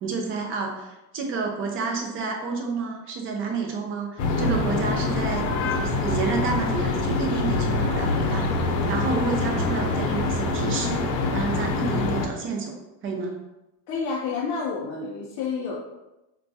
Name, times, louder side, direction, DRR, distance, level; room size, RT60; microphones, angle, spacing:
voice 1, 0.0-8.5 8.9-11.0 11.3-12.7 13.0-13.4, right 4 dB, 25° right, 2 dB, 0.5 m, -29 dB
sound 1, 4.2-12.3, left 3 dB, 80° left, 0.7 m, -25 dB
voice 2, 13.9-15.8, left 5 dB, 40° left, -4 dB, 0.5 m, -29 dB
4.4 x 2.2 x 2.6 m, 0.97 s
supercardioid pair, 135°, 49 cm